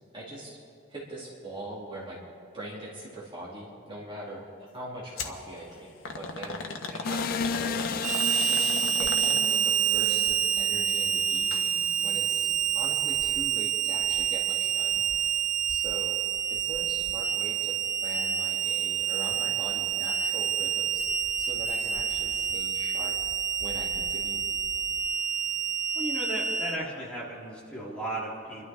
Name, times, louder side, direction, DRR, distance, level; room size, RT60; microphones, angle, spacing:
voice 1, 0.1-0.6 0.9-2.2 2.5-6.7 7.0-8.2 8.5-16.1 16.5-17.7 18.0-23.1 23.6-24.5, right 1 dB, 25° right, -5 dB, 2.4 m, -42 dB
sound 1, 5.2-5.4 6.0-9.7 11.3-11.7 12.0-12.1 13.0-13.1, left 3 dB, 80° left, 1.2 m, -37 dB
sound 2, 7.0-17.9 18.2-18.3 18.8-19.0 19.3-20.0 20.5-25.2, left 6 dB, 45° left, 0.4 m, -39 dB
Harmonica, 8.0-26.8, right 9 dB, 40° right, 0.6 m, -28 dB
voice 2, 25.9-28.7, right 1 dB, 5° left, -6 dB, 2.8 m, -35 dB
27.0 x 12.0 x 3.5 m, 2.6 s
head